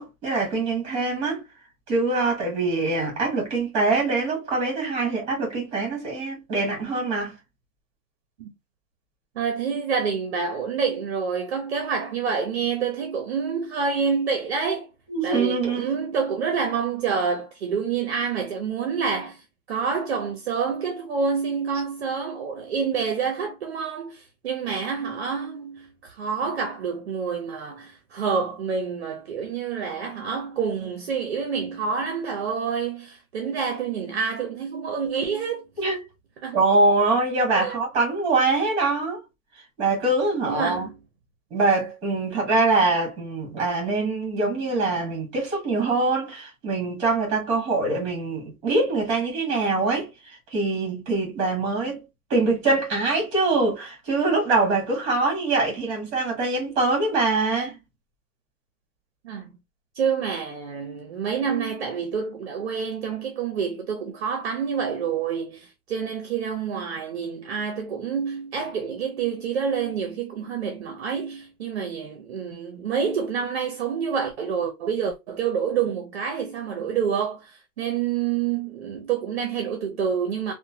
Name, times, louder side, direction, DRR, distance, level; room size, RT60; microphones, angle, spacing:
voice 1, 0.0-1.4 1.9-7.3 15.1-16.0 35.8-36.0 36.5-39.2 39.8-40.9 41.5-52.0 52.3-57.8, right 3 dB, 15° right, 1.1 m, -24 dB
voice 2, 9.4-14.9 15.2-19.4 19.7-35.6 36.4-36.6 37.5-37.8 40.5-40.9 59.2-59.5 60.0-80.5, right 6 dB, 50° right, 0.5 m, -27 dB
2.9 x 2.1 x 2.6 m
hypercardioid pair, 175°, 43 cm